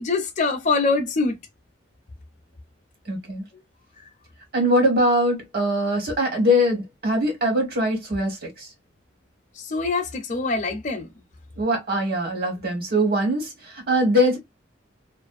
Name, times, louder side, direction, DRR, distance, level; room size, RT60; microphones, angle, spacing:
voice 1, 0.0-1.4 9.7-11.1, left 3 dB, 40° left, 0.5 m, -24 dB
voice 2, 3.1-3.4 4.5-8.7 11.6-14.4, equal, 55° right, 1.4 m, -22 dB
2.5 x 2.4 x 2.4 m
head